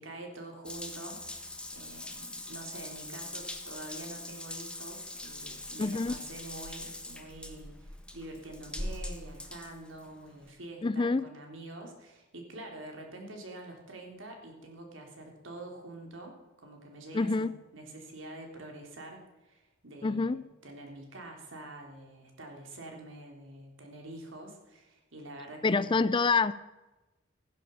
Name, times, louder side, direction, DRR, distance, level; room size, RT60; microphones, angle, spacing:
voice 1, 0.0-1.4 1.7-26.0, right 2 dB, 75° right, 2 dB, 3.5 m, -46 dB
Water tap faucet / Bathtub (filling or washing) / Drip, 0.6-10.5, left 1 dB, 5° left, 1.4 m, -42 dB
voice 2, 5.8-6.2 10.8-11.2 17.1-17.5 20.0-20.4 25.6-26.5, left 4 dB, 25° left, 17 dB, 0.4 m, -27 dB
15.5 x 10.5 x 7.0 m, 1.1 s
head